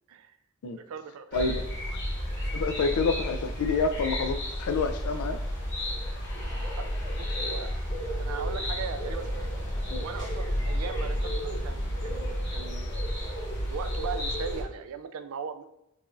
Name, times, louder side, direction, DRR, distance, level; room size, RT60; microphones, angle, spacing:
voice 1, 0.8-1.6 6.8-7.7 8.2-9.5 10.0-12.9 13.7-15.6, right 6 dB, 70° right, 10 dB, 0.3 m, -39 dB
voice 2, 1.3-2.0 2.5-5.4 9.9-10.1, left 4 dB, 80° left, 8 dB, 0.3 m, -28 dB
sound 1, 1.3-14.6, equal, 55° left, 1.1 m, -31 dB
4.8 x 2.4 x 2.5 m, 0.83 s
head